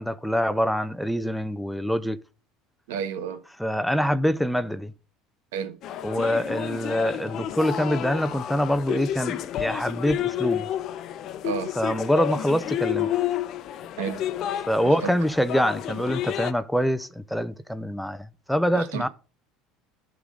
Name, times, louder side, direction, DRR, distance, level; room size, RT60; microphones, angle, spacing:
voice 1, 0.0-2.2 3.6-4.9 6.0-10.7 11.8-13.1 14.6-19.1, equal, ahead, 0.5 m, -25 dB
voice 2, 2.9-3.4 5.5-5.8 11.4-11.7 14.0-14.3 14.8-15.1 18.7-19.1, right 8 dB, 90° right, 1.3 m, -31 dB
sound 1, 5.8-16.5, left 11 dB, 50° left, 0.7 m, -30 dB
11.5 x 3.8 x 6.2 m
supercardioid pair, 120°, 0 cm